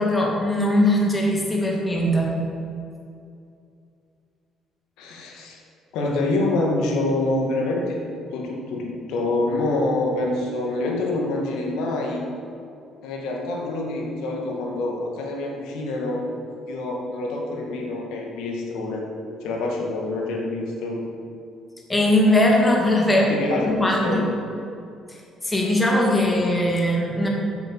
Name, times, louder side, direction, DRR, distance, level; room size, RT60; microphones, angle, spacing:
voice 1, 0.0-2.3 21.9-23.3 23.7-24.2 25.4-27.3, left 1 dB, 15° left, -1 dB, 2.2 m, -20 dB
voice 2, 5.0-5.6 5.9-8.0 8.3-12.2 13.0-16.3 16.7-21.0 23.1-24.2, left 2 dB, 85° left, -1 dB, 1.9 m, -26 dB
7.7 x 7.5 x 7.2 m, 2.5 s
cardioid pair, 115°, 0 cm